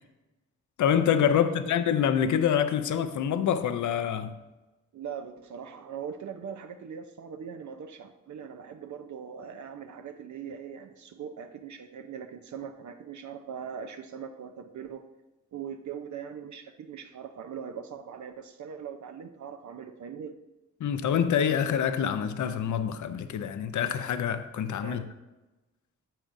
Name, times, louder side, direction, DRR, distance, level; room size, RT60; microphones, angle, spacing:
voice 1, 0.8-4.3 20.8-25.0, left 8 dB, 80° left, 0.6 m, -26 dB
voice 2, 4.9-15.0 15.5-20.3 24.8-25.1, right 7 dB, 75° right, 0.7 m, -41 dB
10.0 x 7.3 x 2.6 m
cardioid pair, 100°, 29 cm